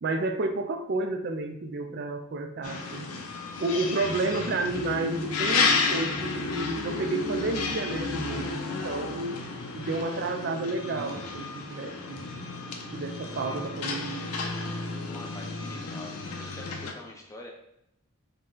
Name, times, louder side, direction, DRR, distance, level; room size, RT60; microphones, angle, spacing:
voice 1, 0.0-3.1 3.6-9.4 9.8-12.2 12.9-14.4, right 2 dB, 45° right, 6 dB, 0.4 m, -31 dB
sound 1, 2.6-16.9, left 4 dB, 85° left, 0.6 m, -32 dB
voice 2, 15.1-17.5, left 2 dB, 15° left, 0 dB, 0.6 m, -45 dB
5.2 x 2.2 x 3.7 m, 0.79 s
head